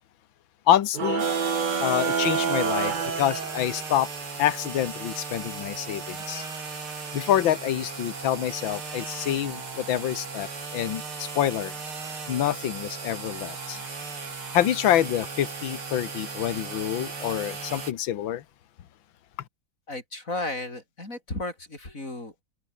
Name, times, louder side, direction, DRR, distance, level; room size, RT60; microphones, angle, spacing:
voice 1, 0.7-1.2 1.8-4.1 4.4-6.5 7.1-11.7 12.3-13.8 14.5-18.4, left 11 dB, 70° left, 1.9 m, -26 dB
sound 1, 0.9-3.9, right 6 dB, 65° right, 0.4 m, -27 dB
sound 2, 1.2-17.9, right 4 dB, 90° right, 4.9 m, -36 dB
voice 2, 19.9-22.4, left 2 dB, 35° left, 6.8 m, -34 dB
omnidirectional pair, 2.3 m